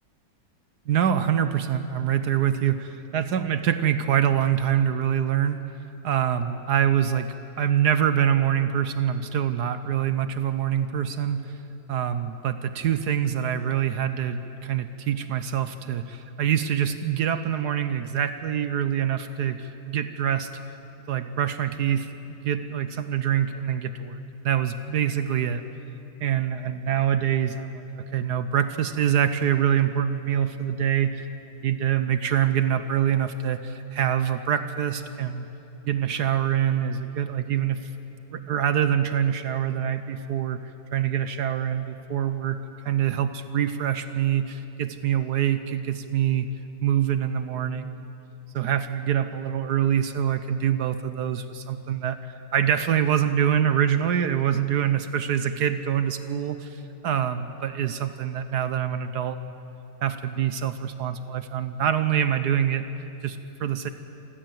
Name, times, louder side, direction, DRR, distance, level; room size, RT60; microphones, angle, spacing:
voice 1, 0.9-5.6 6.0-7.3 7.6-11.4 11.9-20.5 21.1-25.6 26.2-31.3 31.6-35.5 35.9-37.8 38.3-40.6 40.9-42.6 42.8-46.5 46.8-48.0 48.5-59.6 60.0-62.8 63.2-63.9, right 9 dB, 65° right, 10 dB, 1.2 m, -25 dB
27.0 x 14.5 x 7.8 m, 3.0 s
omnidirectional pair, 2.1 m